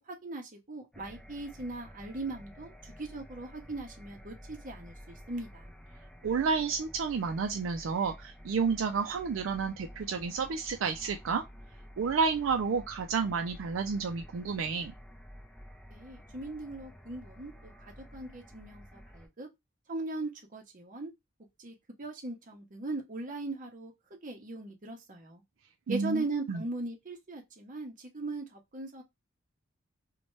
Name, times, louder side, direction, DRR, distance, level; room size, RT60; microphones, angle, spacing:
voice 1, 0.1-5.7 15.9-19.5 19.9-21.1 21.6-23.9 24.2-25.4 25.9-29.0, right 2 dB, 40° right, 0.7 m, -39 dB
sound 1, 0.9-19.3, equal, 5° left, 0.5 m, -51 dB
voice 2, 6.2-11.4 12.0-14.9 25.9-26.6, right 5 dB, 70° right, 0.4 m, -30 dB
2.8 x 2.2 x 3.0 m
head